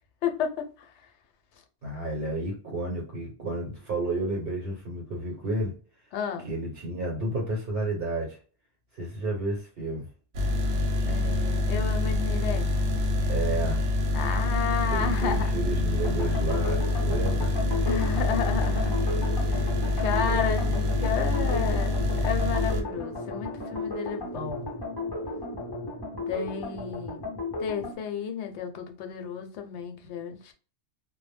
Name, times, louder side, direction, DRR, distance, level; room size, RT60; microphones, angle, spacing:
voice 1, 0.2-0.9 6.1-6.5 11.1-12.8 14.1-15.6 17.9-19.1 19.5-19.7 20.0-21.9 22.2-24.7 26.3-27.3 27.6-30.5, left 7 dB, 80° left, 0.8 m, -32 dB
voice 2, 1.8-5.8 6.4-8.4 9.0-10.1 13.3-13.8 14.9-17.8, right 2 dB, 60° right, 0.9 m, -31 dB
sound 1, 10.3-22.8, left 2 dB, 85° right, 0.9 m, -26 dB
sound 2, 15.9-27.9, left 2 dB, 30° left, 0.4 m, -34 dB
2.1 x 2.0 x 3.2 m
omnidirectional pair, 1.2 m